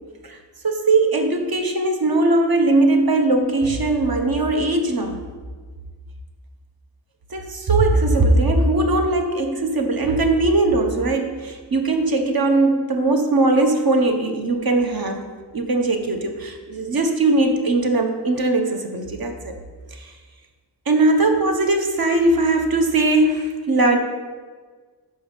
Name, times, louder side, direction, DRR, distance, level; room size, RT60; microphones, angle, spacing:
voice 1, 0.6-5.2 7.3-19.5 19.9-20.1 20.9-24.0, right 2 dB, 55° right, 4 dB, 0.9 m, -20 dB
5.7 x 5.3 x 5.0 m, 1.5 s
wide cardioid pair, 55°, 43 cm